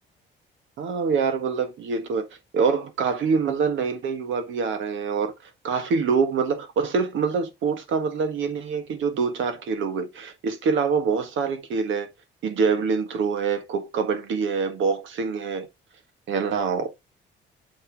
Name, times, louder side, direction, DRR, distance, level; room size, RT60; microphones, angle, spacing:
voice 1, 0.8-2.3 2.5-12.1 12.4-15.7 16.3-16.9, right 5 dB, 75° right, 1.6 m, -25 dB
7.1 x 5.1 x 3.5 m
cardioid pair, 90°, 20 cm